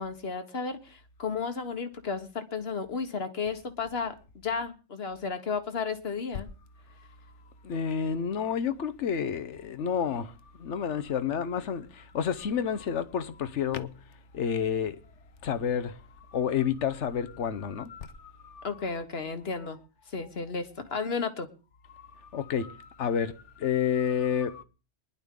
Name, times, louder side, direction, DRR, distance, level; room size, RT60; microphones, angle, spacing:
voice 1, 0.0-4.1 4.4-6.5 18.6-19.8 20.1-21.5, left 5 dB, 60° left, 1.5 m, -33 dB
voice 2, 7.6-14.0 14.3-15.0 15.4-16.0 16.3-18.7 21.9-24.6, left 7 dB, 85° left, 1.2 m, -30 dB
22.0 x 11.0 x 3.7 m
omnidirectional pair, 1.2 m